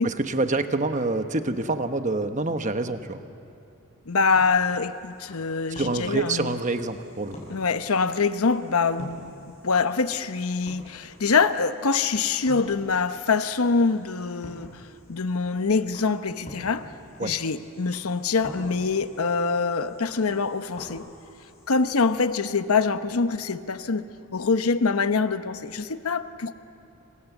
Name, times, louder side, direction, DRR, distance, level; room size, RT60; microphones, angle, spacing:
voice 1, 0.0-3.2 5.7-7.3 17.2-17.3, right 2 dB, 35° right, 8 dB, 1.1 m, -26 dB
voice 2, 4.1-6.6 7.5-14.7 15.1-16.9 17.2-21.0 21.7-24.0 24.3-26.6, left 4 dB, 80° left, 11 dB, 0.9 m, -24 dB
sound 1, 4.1-22.3, equal, 30° left, 6.1 m, -48 dB
28.0 x 25.5 x 7.3 m, 2.6 s
head